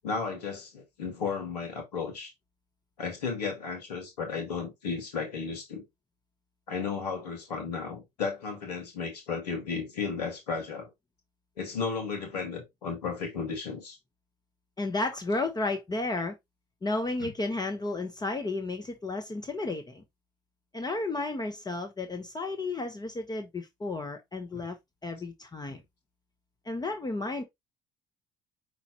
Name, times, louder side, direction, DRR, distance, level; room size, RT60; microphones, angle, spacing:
voice 1, 0.0-2.3 3.0-5.8 6.7-10.9 11.6-14.0 17.2-17.3 24.5-24.6 25.7-25.8, left 5 dB, 80° left, 1.4 m, -34 dB
voice 2, 14.8-16.4 16.8-20.0 20.7-24.8 25.0-25.8 26.7-27.4, left 2 dB, 20° left, 0.9 m, -32 dB
5.5 x 3.1 x 2.8 m
hypercardioid pair, 55°, 20 cm